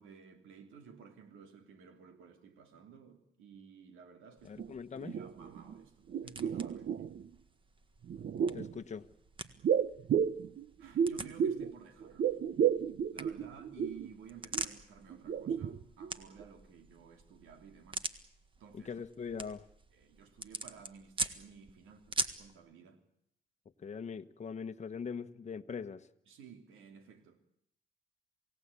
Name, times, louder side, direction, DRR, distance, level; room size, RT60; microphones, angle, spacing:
voice 1, 0.0-4.6 5.0-7.1 10.8-12.3 13.1-18.1 18.6-19.0 19.9-23.0 26.3-27.4, right 6 dB, 85° right, 3.1 m, -55 dB
voice 2, 4.4-5.2 8.5-9.1 18.7-19.7 23.8-26.1, left 6 dB, 35° left, 1.2 m, -41 dB
sound 1, 4.4-22.5, right 3 dB, 25° right, 1.6 m, -45 dB
sound 2, 4.6-4.7 5.0-5.8 6.1-7.3 8.0-8.7 9.6-11.7 12.0-14.1 14.5-14.7 15.1-16.1 16.4-16.5, right 8 dB, 55° right, 0.9 m, -32 dB
28.0 x 17.5 x 8.5 m
cardioid pair, 90°, 20 cm